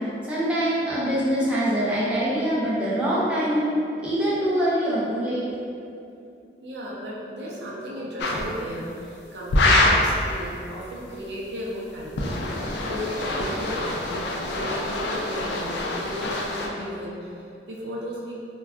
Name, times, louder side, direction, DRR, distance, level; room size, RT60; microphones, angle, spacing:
voice 1, 0.2-3.7 4.0-5.4, equal, 5° right, -9 dB, 0.4 m, -24 dB
voice 2, 6.6-18.4, equal, 75° right, -5 dB, 0.5 m, -35 dB
sound 1, 8.2-8.5 9.5-10.1 12.0-16.7, left 2 dB, 70° left, 0.3 m, -25 dB
2.2 x 2.2 x 3.5 m, 2.6 s
head